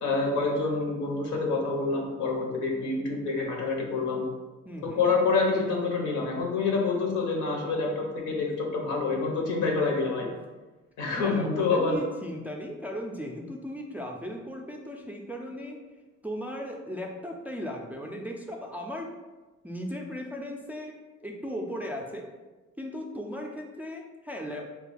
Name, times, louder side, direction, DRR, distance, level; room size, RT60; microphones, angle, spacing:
voice 1, 0.0-4.2 4.8-10.3 11.0-12.0, left 4 dB, 80° left, 0 dB, 0.9 m, -27 dB
voice 2, 4.6-5.0 10.3-10.4 11.0-15.8 16.2-19.1 19.6-20.9 21.2-22.3 22.8-24.7, equal, 5° right, 0 dB, 0.3 m, -37 dB
2.8 x 2.3 x 4.0 m, 1.2 s
cardioid pair, 90°, 30 cm